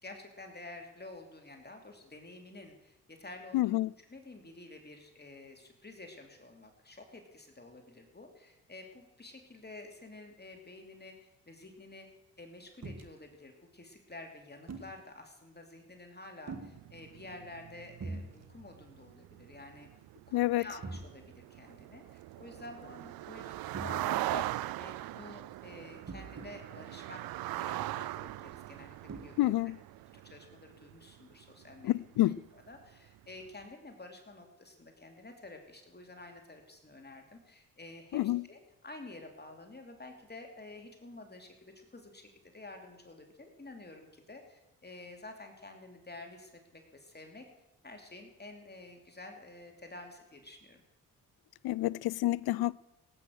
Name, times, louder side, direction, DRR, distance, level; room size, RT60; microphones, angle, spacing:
voice 1, 0.0-3.7 4.1-12.1 12.4-19.9 20.3-27.2 27.5-29.5 30.2-31.9 32.5-38.2 38.5-38.6 38.8-47.5 47.8-50.8, left 2 dB, 25° left, 2.8 m, -50 dB
voice 2, 3.5-3.9 20.3-20.7 29.4-29.8 31.8-32.4 38.1-38.4 51.6-52.7, left 16 dB, 65° left, 0.5 m, -28 dB
sound 1, 12.8-13.1 14.7-15.0 16.5-16.8 18.0-18.3 18.6-18.8 19.3-19.4 20.8-21.1 23.7-24.4 26.1-26.5 27.5-27.6 29.1-29.3, right 3 dB, 40° right, 2.0 m, -42 dB
sound 2, 16.7-32.1 32.3-32.7 33.1-33.3, right 16 dB, 60° right, 0.5 m, -41 dB
17.5 x 9.0 x 6.3 m
supercardioid pair, 50°, 40 cm